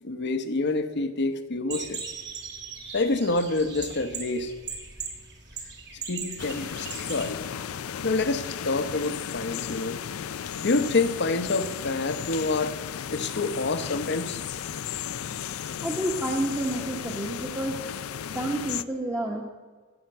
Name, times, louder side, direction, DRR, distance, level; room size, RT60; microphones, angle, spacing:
voice 1, 0.0-2.0 2.9-4.5 6.1-7.4 8.0-10.0 10.6-12.7 13.1-14.4, left 3 dB, 55° left, 9 dB, 0.9 m, -27 dB
sound 1, 1.7-7.3, right 5 dB, 55° right, 2.4 m, -39 dB
sound 2, 6.4-18.8, left 8 dB, 90° left, 0.5 m, -35 dB
voice 2, 15.8-17.8 18.3-19.4, right 1 dB, 10° right, -2 dB, 1.1 m, -29 dB
16.0 x 5.9 x 7.8 m, 1.5 s
head